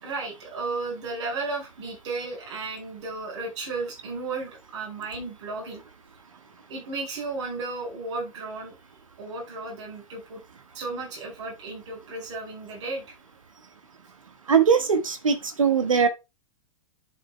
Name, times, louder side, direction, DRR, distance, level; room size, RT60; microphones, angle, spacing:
voice 1, 0.0-5.8 6.7-8.7 9.2-10.4 10.7-13.1, right 3 dB, 55° right, 5.0 m, -34 dB
voice 2, 14.5-16.1, right 6 dB, 75° right, 1.5 m, -21 dB
12.0 x 6.7 x 2.2 m
figure-of-eight pair, 100°, 17 cm